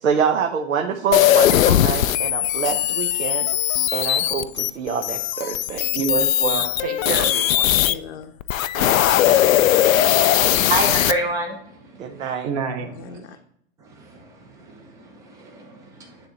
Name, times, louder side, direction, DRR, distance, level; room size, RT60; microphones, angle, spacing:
voice 1, 0.0-3.5 3.9-5.9 8.8-9.0 9.3-9.4 12.0-12.5, right 6 dB, 85° right, 4 dB, 1.0 m, -26 dB
sound 1, 1.1-7.9 8.4-11.1, left 12 dB, 90° left, 0.5 m, -19 dB
voice 2, 5.9-7.7 12.4-12.9, right 6 dB, 30° right, 7 dB, 0.9 m, -27 dB
voice 3, 6.6-7.2 7.8-8.3 9.0-10.8 13.0-13.4, left 7 dB, 55° left, 6 dB, 0.8 m, -37 dB
voice 4, 10.5-11.6 11.9-12.2 14.0-14.3 14.5-16.3, right 2 dB, 10° right, 3 dB, 0.5 m, -28 dB
10.0 x 3.5 x 3.9 m, 0.68 s
hypercardioid pair, 155°, 39 cm